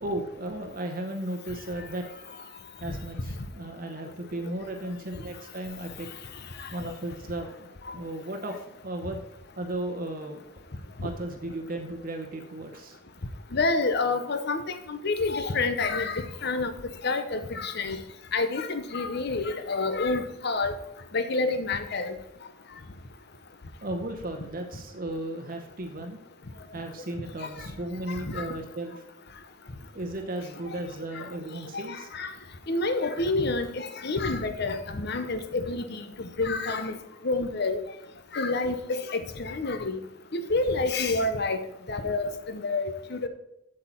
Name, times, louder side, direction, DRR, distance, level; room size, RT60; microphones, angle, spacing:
voice 1, 0.0-2.0 2.8-6.1 6.7-7.7 7.9-9.2 9.6-10.4 11.0-13.0 23.8-26.2 26.7-29.0 29.9-32.1, right 1 dB, 45° right, 4 dB, 0.9 m, -35 dB
voice 2, 13.5-14.6 14.9-16.7 17.0-18.0 18.3-20.7 21.1-22.1 28.2-28.4 31.7-32.3 32.7-37.0 37.2-37.8 38.3-40.0 40.3-41.6 41.9-43.3, left 3 dB, 55° left, 9 dB, 0.8 m, -28 dB
8.0 x 7.7 x 4.4 m, 0.85 s
head